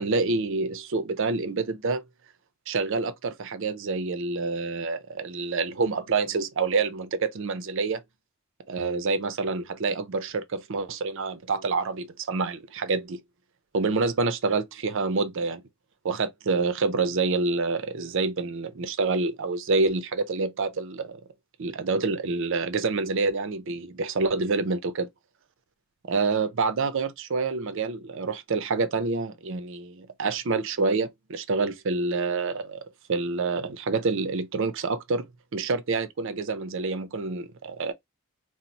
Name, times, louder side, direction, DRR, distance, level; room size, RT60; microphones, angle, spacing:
voice 1, 0.0-2.0 2.7-8.0 8.7-13.2 13.7-15.6 16.0-21.2 21.6-25.1 26.1-32.8 33.1-37.9, right 4 dB, 60° right, 0.5 m, -27 dB
2.8 x 2.0 x 3.9 m
head